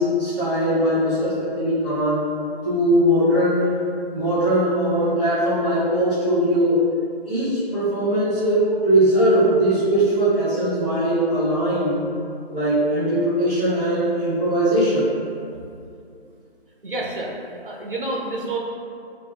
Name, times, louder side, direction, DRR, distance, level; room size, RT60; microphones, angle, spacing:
voice 1, 0.0-2.3 2.6-3.8 4.1-6.8 7.2-12.0 12.5-15.1, right 1 dB, ahead, -30 dB, 0.6 m, -20 dB
voice 2, 16.8-17.3 17.6-18.6, right 2 dB, 55° right, -2 dB, 0.5 m, -29 dB
3.4 x 2.1 x 2.3 m, 2.5 s
figure-of-eight pair, 155°, 32 cm